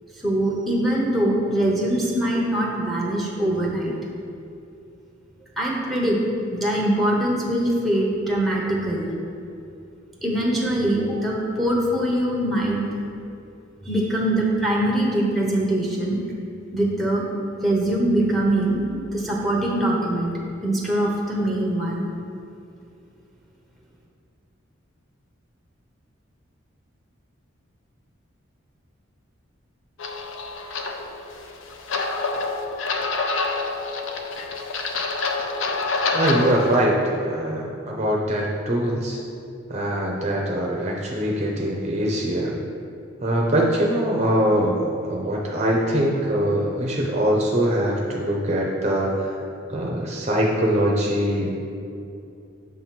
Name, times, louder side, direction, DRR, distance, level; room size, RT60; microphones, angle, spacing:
voice 1, 0.2-3.9 5.6-6.2 6.5-9.1 10.2-12.8 13.8-16.2 16.7-17.2 17.6-20.3 20.6-22.1, right 1 dB, ahead, -3 dB, 0.8 m, -23 dB
sound 1, 30.0-36.9, left 3 dB, 75° left, 0.5 m, -27 dB
voice 2, 36.1-37.0 37.2-39.2 39.7-42.5 43.2-49.4 49.7-51.5, right 1 dB, 35° right, -1 dB, 0.6 m, -23 dB
7.2 x 3.0 x 5.8 m, 2.5 s
head